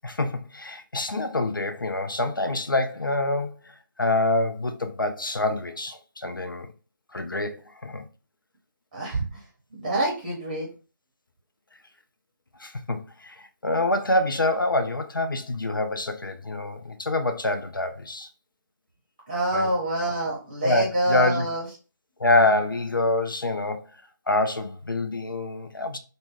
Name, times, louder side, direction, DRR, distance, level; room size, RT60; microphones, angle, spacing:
voice 1, 0.0-6.7 7.1-8.0 12.6-18.3 19.5-19.7 20.6-21.5 22.2-24.0 24.3-26.0, left 2 dB, 80° left, 0.5 m, -26 dB
voice 2, 8.9-9.4 9.8-10.7 19.3-21.6, right 2 dB, 25° right, 0.8 m, -26 dB
2.1 x 2.1 x 3.1 m
figure-of-eight pair, 150°, 11 cm